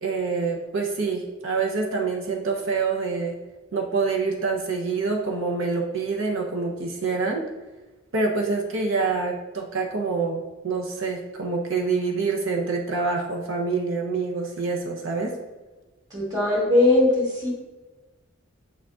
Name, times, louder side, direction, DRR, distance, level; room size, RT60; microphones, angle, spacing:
voice 1, 0.0-3.4 3.7-7.4 8.1-15.4, right 4 dB, 70° right, 1 dB, 0.7 m, -26 dB
voice 2, 16.1-17.5, left 2 dB, 20° right, -3 dB, 2.0 m, -20 dB
7.5 x 6.0 x 2.4 m, 1.2 s
head